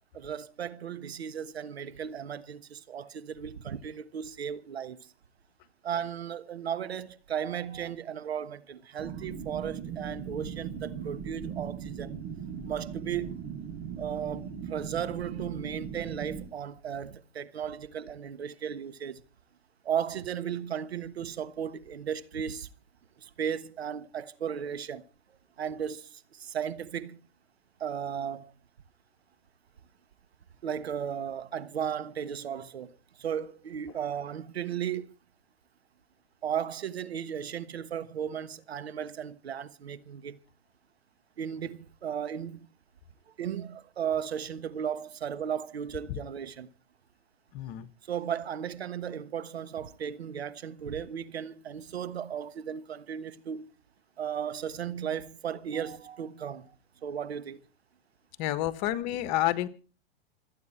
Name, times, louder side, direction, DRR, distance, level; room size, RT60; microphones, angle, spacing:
voice 1, 0.1-5.1 5.8-12.1 12.6-13.4 14.0-19.2 19.8-22.7 23.2-25.0 25.6-27.2 27.8-28.5 30.6-35.1 36.4-40.4 41.4-42.7 43.4-46.7 48.1-53.7 54.2-56.7 57.0-57.6, right 8 dB, 80° right, 1.3 m, -35 dB
sound 1, 9.0-16.4, right 7 dB, 55° right, 7.1 m, -39 dB
voice 2, 47.5-47.9 58.4-59.7, left 14 dB, 45° left, 1.6 m, -29 dB
26.5 x 9.4 x 4.5 m
hypercardioid pair, 110°, 31 cm